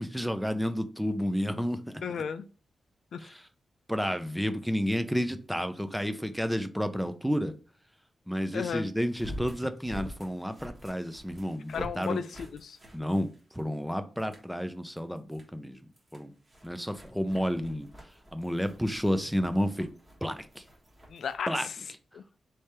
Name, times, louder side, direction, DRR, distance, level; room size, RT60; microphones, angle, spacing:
voice 1, 0.0-1.8 3.9-7.5 8.3-12.2 12.9-13.3 13.5-15.8 16.1-16.3 16.6-17.9 18.3-19.9 20.2-20.5 21.5-21.7, equal, ahead, 0.4 m, -30 dB
voice 2, 2.0-2.5 3.1-3.3 8.5-8.9 11.7-12.8 21.1-21.8 22.1-22.2, left 7 dB, 75° left, 0.3 m, -34 dB
sound 1, 2.6-2.7 9.1-13.8 14.2-14.5 15.0-15.5 15.9-21.4, equal, 20° right, 1.3 m, -47 dB
3.3 x 3.3 x 4.2 m
wide cardioid pair, 135°, 0 cm